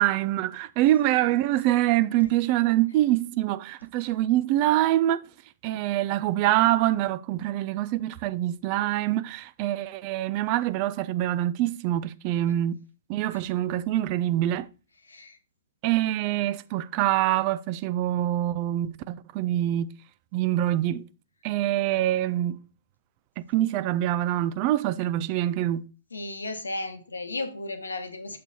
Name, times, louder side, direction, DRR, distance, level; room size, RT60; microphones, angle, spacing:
voice 1, 0.0-5.2 5.6-12.8 13.1-14.7 15.8-19.9 20.3-21.1 21.4-22.6 23.4-25.9, right 14 dB, 35° right, 0.3 m, -25 dB
voice 2, 26.1-28.4, left 2 dB, 75° left, 1.0 m, -34 dB
6.7 x 4.3 x 4.1 m
figure-of-eight pair, 115°, 0 cm